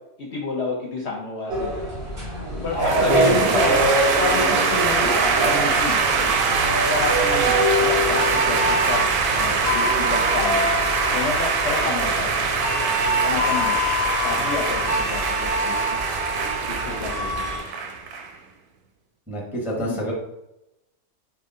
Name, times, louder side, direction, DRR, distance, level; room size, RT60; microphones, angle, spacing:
voice 1, 0.2-1.7 2.6-3.9 4.2-5.1 5.4-6.0 6.9-9.0 9.3-10.7 11.1-12.5 13.2-13.8 14.2-16.0 16.7-17.4 19.7-20.0, left 3 dB, 60° left, -2 dB, 0.8 m, -29 dB
sound 1, 1.5-17.6, equal, 40° right, 1.5 m, -25 dB
sound 2, 2.8-18.3, right 5 dB, 90° right, 1.1 m, -23 dB
voice 2, 3.1-3.5 19.3-20.1, equal, ahead, -3 dB, 0.7 m, -26 dB
3.9 x 2.3 x 3.7 m, 0.90 s
omnidirectional pair, 1.6 m